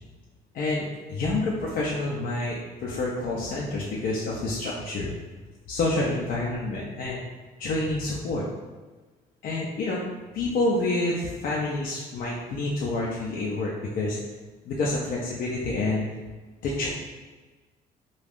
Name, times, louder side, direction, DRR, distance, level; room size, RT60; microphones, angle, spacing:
voice 1, 0.5-5.1 5.7-7.2 7.6-8.4 9.4-10.0 10.3-14.2 14.6-16.1 16.6-16.9, left 2 dB, 55° left, -4 dB, 0.5 m, -28 dB
2.5 x 2.3 x 3.4 m, 1.3 s
cardioid pair, 110°, 17 cm